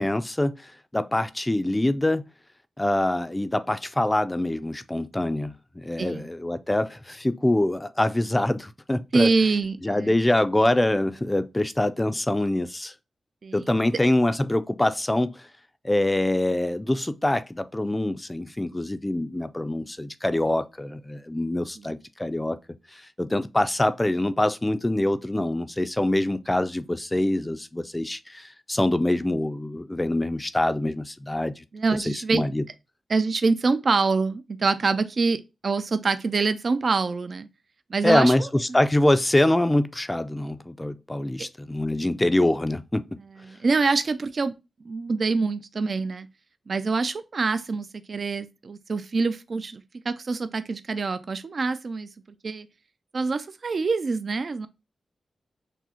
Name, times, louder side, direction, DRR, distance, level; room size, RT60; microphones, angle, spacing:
voice 1, 0.0-2.2 2.8-9.3 9.8-12.9 13.5-15.5 15.8-22.6 22.9-31.5 32.1-32.6 38.0-43.1, left 1 dB, 15° left, 0.4 m, -24 dB
voice 2, 6.0-6.3 9.1-10.1 13.4-13.7 31.7-32.5 33.1-37.5 37.9-38.3 43.5-44.5 44.8-46.3 46.7-52.1 52.4-52.7 53.1-54.7, right 4 dB, 60° right, 0.3 m, -25 dB
6.0 x 2.0 x 2.8 m
cardioid pair, 70°, 0 cm